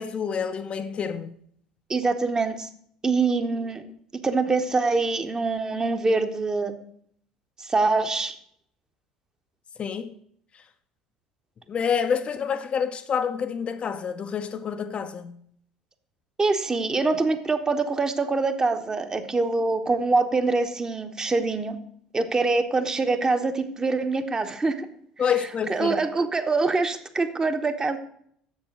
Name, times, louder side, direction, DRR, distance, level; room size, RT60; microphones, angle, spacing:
voice 1, 0.0-1.3 9.8-10.1 11.7-15.4 25.2-26.0, left 7 dB, 35° left, 0.6 m, -28 dB
voice 2, 1.9-2.7 3.0-3.8 4.2-6.7 7.6-8.3 16.4-21.8 22.1-24.9 25.7-28.0, right 3 dB, 20° right, 1.0 m, -24 dB
7.2 x 7.1 x 6.7 m
figure-of-eight pair, 65°, 3 cm